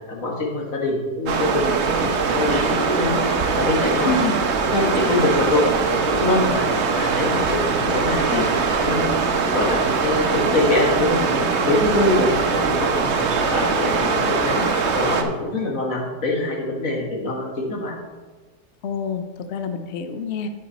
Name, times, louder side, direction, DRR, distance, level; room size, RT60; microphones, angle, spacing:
voice 1, 0.1-3.2 3.6-4.1 4.7-14.7 14.9-17.9, left 2 dB, 50° left, -1 dB, 1.9 m, -24 dB
sound 1, 1.3-15.2, right 5 dB, 55° right, 0.8 m, -22 dB
voice 2, 4.0-4.4 18.8-20.5, left 4 dB, 70° left, 7 dB, 0.6 m, -26 dB
12.0 x 5.5 x 4.1 m, 1.3 s
omnidirectional pair, 1.9 m